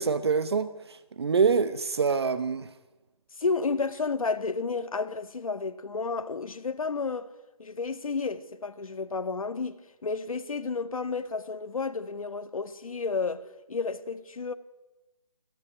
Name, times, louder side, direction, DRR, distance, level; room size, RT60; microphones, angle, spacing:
voice 1, 0.0-2.7, right 5 dB, 45° right, 1.0 m, -26 dB
voice 2, 3.4-7.3 7.6-14.5, left 4 dB, 70° left, 1.7 m, -31 dB
29.5 x 13.5 x 9.9 m
hypercardioid pair, 170°, 19 cm